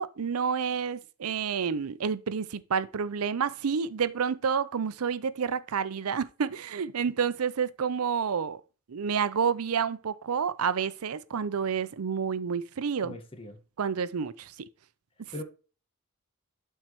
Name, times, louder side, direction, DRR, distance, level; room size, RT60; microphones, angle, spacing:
voice 1, 0.0-8.6 8.9-13.1 13.8-14.5, right 6 dB, 90° right, 0.5 m, -29 dB
voice 2, 13.0-13.6 15.3-15.4, left 1 dB, 25° left, 1.4 m, -40 dB
12.0 x 4.5 x 3.1 m
head